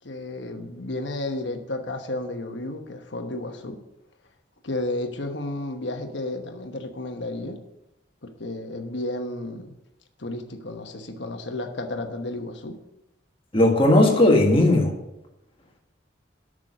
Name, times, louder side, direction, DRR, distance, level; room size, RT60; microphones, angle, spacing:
voice 1, 0.0-3.8 4.6-7.6 8.2-9.7 10.2-12.8, left 2 dB, 70° left, 6 dB, 1.1 m, -32 dB
voice 2, 13.5-14.9, left 1 dB, 30° left, 1 dB, 1.6 m, -17 dB
8.2 x 6.3 x 6.3 m, 0.91 s
head